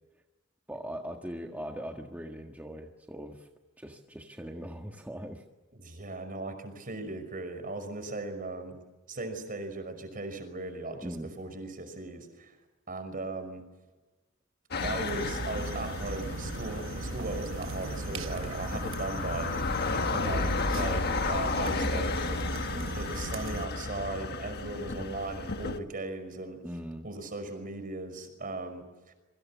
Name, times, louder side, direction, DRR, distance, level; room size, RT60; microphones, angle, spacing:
voice 1, 0.7-3.5 3.8-5.4 11.0-11.3 20.4-20.6 22.7-22.9 26.6-27.1, equal, 10° right, 2 dB, 1.7 m, -40 dB
voice 2, 5.7-8.8 9.1-12.5 12.9-13.6 14.8-19.5 20.1-21.0 21.3-26.6 27.0-29.1, right 2 dB, 45° right, 8 dB, 5.6 m, -38 dB
sound 1, 14.7-25.8, left 3 dB, 50° left, 1.4 m, -33 dB
sound 2, 14.8-23.7, right 2 dB, 70° right, 1.0 m, -38 dB
28.0 x 24.5 x 7.4 m, 1.2 s
head